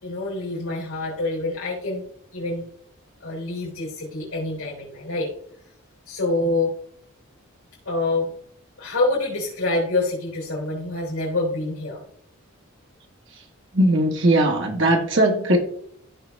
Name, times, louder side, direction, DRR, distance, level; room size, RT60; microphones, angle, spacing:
voice 1, 0.0-2.0 2.3-2.6 3.2-5.3 6.1-6.7 7.9-8.3 8.8-12.0, left 2 dB, 80° left, -4 dB, 3.6 m, -26 dB
voice 2, 13.7-15.6, right 1 dB, 60° right, 2 dB, 1.9 m, -19 dB
15.0 x 5.9 x 3.5 m, 0.66 s
head